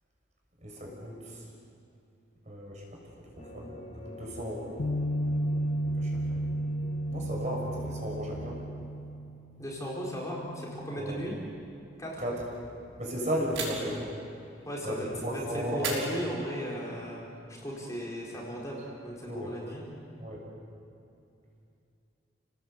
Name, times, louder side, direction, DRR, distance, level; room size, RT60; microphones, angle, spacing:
voice 1, 0.6-1.2 2.5-3.0 3.4-3.8 4.0-4.7 6.0-6.5 7.1-8.6 11.0-11.2 12.2-12.4 13.0-14.1 14.8-16.0 19.3-19.5 20.2-20.4, equal, 35° right, -1 dB, 6.3 m, -35 dB
sound 1, 3.4-8.6, left 1 dB, 40° left, 3.1 m, -46 dB
Bass guitar, 4.8-11.0, right 1 dB, 85° left, 1.6 m, -33 dB
voice 2, 9.6-11.3 12.0-12.2 14.6-17.2 17.5-19.8, equal, 15° left, -4 dB, 4.5 m, -36 dB
sound 2, 13.5-14.1 15.8-16.8, right 4 dB, 85° right, 6.0 m, -37 dB
30.0 x 19.0 x 8.1 m, 2.6 s
head